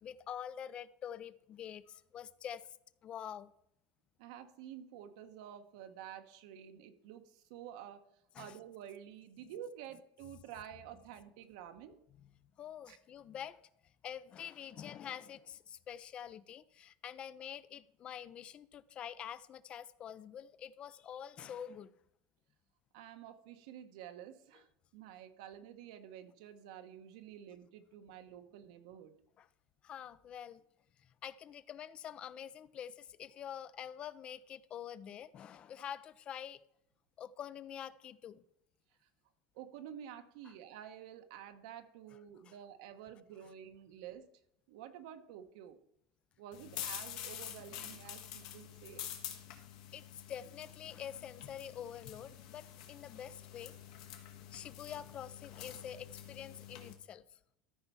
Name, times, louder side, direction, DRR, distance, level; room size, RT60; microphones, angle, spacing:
voice 1, 0.0-2.7 3.0-3.5 8.3-8.6 12.6-13.7 14.0-21.9 29.4-29.5 29.8-30.6 31.0-36.6 37.2-38.4 40.4-40.5 42.5-42.6 49.9-53.7 54.5-57.2, left 9 dB, 35° left, 0.4 m, -46 dB
voice 2, 4.2-8.0 8.4-12.0 12.9-13.0 22.9-24.7 24.9-29.2 39.5-44.2 44.7-45.8 46.4-49.0, right 10 dB, 80° right, 1.1 m, -50 dB
sound 1, 46.5-56.9, left 10 dB, 80° left, 1.8 m, -47 dB
13.5 x 4.5 x 5.5 m
supercardioid pair, 140°, 3 cm